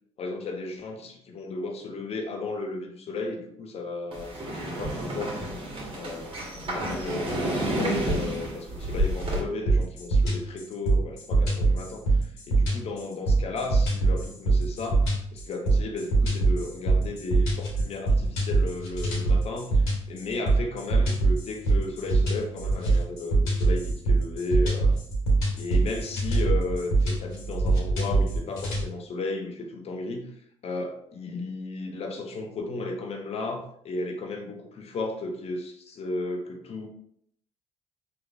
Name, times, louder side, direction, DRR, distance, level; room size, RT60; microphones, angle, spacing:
voice 1, 0.2-5.4 5.9-24.9 25.5-30.3 30.6-36.9, left 2 dB, 45° left, 3 dB, 0.9 m, -34 dB
sound 1, 4.1-9.4, right 1 dB, 40° right, 1.5 m, -30 dB
sound 2, 9.7-28.9, right 3 dB, 80° left, 1.6 m, -23 dB
4.7 x 3.3 x 2.5 m, 0.67 s
hypercardioid pair, 55°, 14 cm